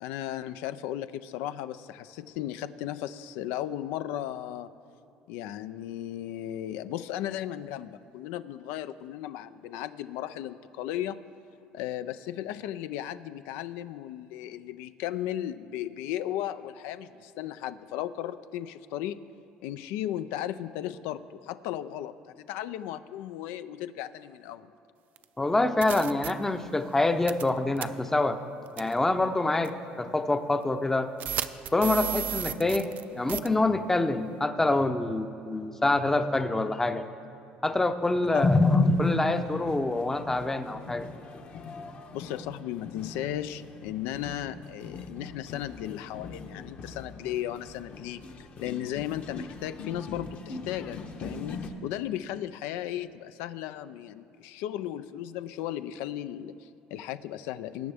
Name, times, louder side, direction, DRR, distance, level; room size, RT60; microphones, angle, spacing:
voice 1, 0.0-4.7 5.3-11.2 11.7-19.2 19.6-24.7 38.3-38.5 42.1-57.9, left 12 dB, 85° left, 13 dB, 0.4 m, -35 dB
sound 1, 25.2-25.3 25.8-26.3 27.3-27.5 27.8-27.9 28.8-28.9 29.6-29.7 31.2-33.0 33.3-33.5, right 10 dB, 55° right, 0.4 m, -32 dB
voice 2, 25.4-28.4 28.8-31.1 31.7-37.0 37.6-41.1, left 2 dB, 10° left, 9 dB, 0.6 m, -25 dB
sound 2, 38.3-51.7, left 4 dB, 45° left, 1.0 m, -43 dB
20.5 x 8.7 x 3.5 m, 2.8 s
cardioid pair, 115°, 3 cm